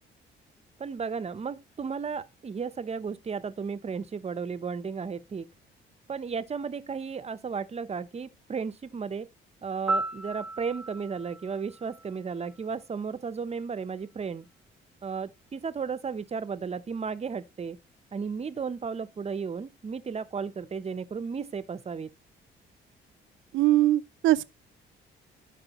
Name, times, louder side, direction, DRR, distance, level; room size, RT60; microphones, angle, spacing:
voice 1, 0.8-5.5 6.1-9.3 9.6-14.4 15.0-17.8 18.1-22.1, right 5 dB, 30° right, 0.7 m, -34 dB
Piano, 9.9-12.8 21.0-21.2, right 2 dB, ahead, 1.0 m, -35 dB
voice 2, 23.5-24.4, right 14 dB, 80° right, 0.5 m, -22 dB
13.0 x 4.8 x 3.0 m
cardioid pair, 90°, 20 cm